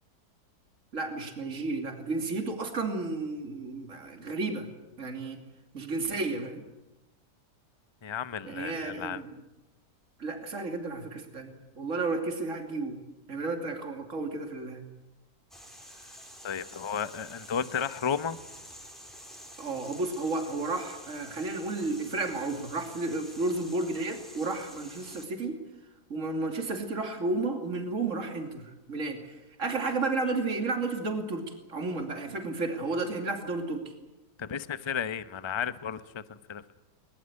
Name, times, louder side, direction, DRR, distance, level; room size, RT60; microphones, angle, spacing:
voice 1, 0.9-4.7 5.0-5.4 5.7-6.6 8.4-9.4 10.2-12.9 13.3-14.8 19.6-25.6 26.1-29.2 29.6-31.4 31.7-33.8, right 3 dB, 45° right, 5 dB, 3.1 m, -32 dB
voice 2, 8.0-9.2 16.4-18.4 34.4-36.7, left 7 dB, 25° left, 13 dB, 0.6 m, -33 dB
sound 1, 15.5-25.3, equal, ahead, 4.2 m, -49 dB
21.5 x 21.0 x 9.9 m, 1.0 s
omnidirectional pair, 1.8 m